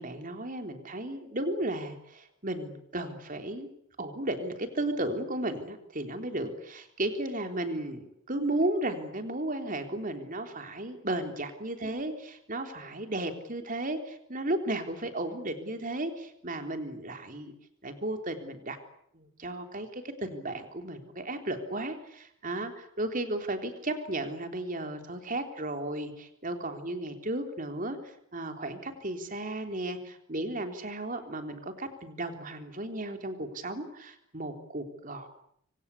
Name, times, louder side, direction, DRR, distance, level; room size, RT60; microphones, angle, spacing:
voice 1, 0.0-3.7 4.0-17.5 17.8-18.8 19.1-35.3, right 1 dB, 40° right, 6 dB, 3.5 m, -34 dB
26.5 x 25.0 x 8.5 m, 0.71 s
head